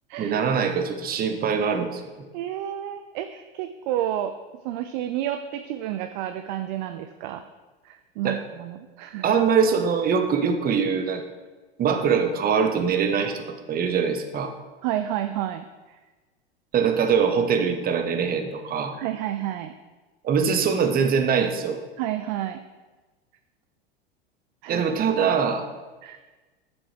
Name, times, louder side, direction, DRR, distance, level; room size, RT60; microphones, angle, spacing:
voice 1, 0.2-2.2 8.2-8.4 9.2-11.2 11.8-13.4 13.7-14.5 16.7-19.0 20.2-21.8 24.7-25.6, right 6 dB, 30° right, 6 dB, 1.0 m, -23 dB
voice 2, 2.3-4.3 4.6-7.4 7.8-9.4 14.8-16.0 19.0-19.7 22.0-22.6 24.6-24.9 26.0-26.2, right 12 dB, 50° right, 9 dB, 0.5 m, -30 dB
7.5 x 7.1 x 3.4 m, 1.3 s
figure-of-eight pair, 85°, 30 cm